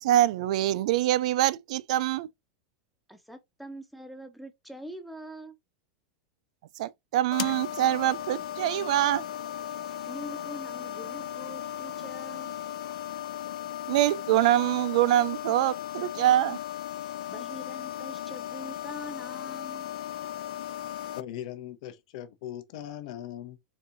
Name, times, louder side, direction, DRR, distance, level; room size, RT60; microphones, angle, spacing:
voice 1, 0.0-2.3 6.8-9.2 13.9-16.6, right 13 dB, 65° right, 0.3 m, -24 dB
voice 2, 3.1-5.6 10.1-12.6 17.3-19.9, equal, ahead, 0.5 m, -44 dB
sound 1, 7.3-21.2, left 11 dB, 75° left, 0.3 m, -36 dB
voice 3, 21.2-23.6, left 11 dB, 60° left, 0.7 m, -39 dB
4.1 x 3.5 x 2.6 m
supercardioid pair, 155°, 4 cm